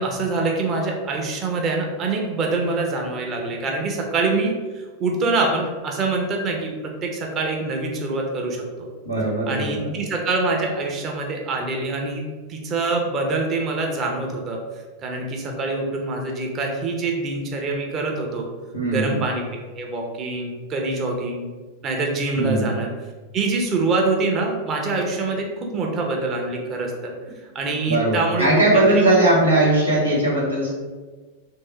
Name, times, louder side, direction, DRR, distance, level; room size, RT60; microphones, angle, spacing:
voice 1, 0.0-8.9 9.5-12.2 12.5-14.6 15.0-18.5 18.9-21.5 21.8-22.9 23.3-27.1 27.5-29.2, right 3 dB, 30° right, 1 dB, 0.7 m, -25 dB
voice 2, 9.0-10.0 18.7-19.2 22.4-22.7 27.9-30.7, right 2 dB, 85° right, -5 dB, 1.1 m, -19 dB
3.2 x 2.7 x 3.2 m, 1.4 s
figure-of-eight pair, 90°, 0 cm